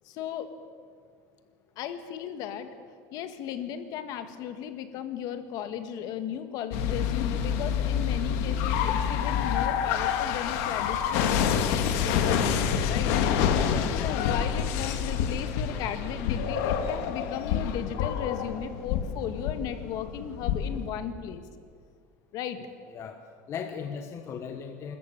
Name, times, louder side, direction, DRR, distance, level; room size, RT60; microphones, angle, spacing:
voice 1, 0.1-0.5 1.8-2.7 3.1-13.1 13.9-21.4 22.3-22.6, left 9 dB, 55° left, 9 dB, 1.8 m, -36 dB
sound 1, 6.7-20.9, left 8 dB, 75° left, 1.9 m, -27 dB
voice 2, 22.6-23.2 23.5-25.0, left 7 dB, 35° left, 5 dB, 1.3 m, -38 dB
25.5 x 14.0 x 8.8 m, 2.1 s
cardioid pair, 145°, 8 cm